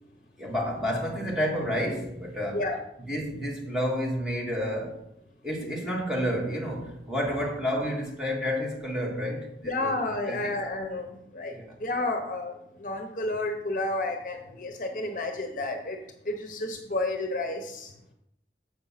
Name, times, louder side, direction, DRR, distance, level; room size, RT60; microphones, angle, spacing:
voice 1, 0.4-2.6 3.0-5.0 5.4-9.9 10.3-10.5 11.5-11.7, equal, 5° right, 1.6 m, -30 dB
voice 2, 9.6-16.0 16.2-17.9, left 2 dB, 50° left, 0.8 m, -31 dB
7.3 x 5.2 x 5.7 m
head